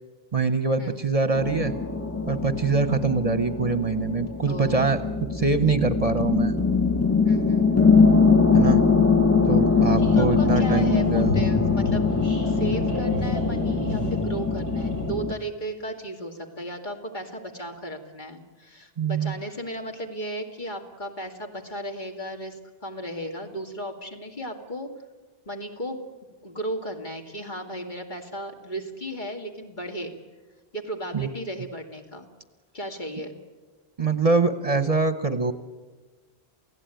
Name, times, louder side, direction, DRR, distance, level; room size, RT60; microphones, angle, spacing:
voice 1, 0.3-1.7 2.3-5.0 5.3-6.5 8.5-8.8 9.5-11.3 19.0-19.4 31.1-31.3 34.0-35.5, right 4 dB, 35° right, 11 dB, 1.0 m, -24 dB
sound 1, 1.4-15.3, left 4 dB, 15° left, 0.8 m, -22 dB
voice 2, 4.5-4.9 7.2-7.8 10.1-12.1 12.4-24.9 25.5-26.0 26.4-30.1 30.7-32.3 32.7-33.3, right 1 dB, 45° left, 3 dB, 2.5 m, -35 dB
sound 2, 9.9-15.1, left 2 dB, 75° left, 7.7 m, -31 dB
29.0 x 16.5 x 9.2 m, 1.3 s
omnidirectional pair, 1.1 m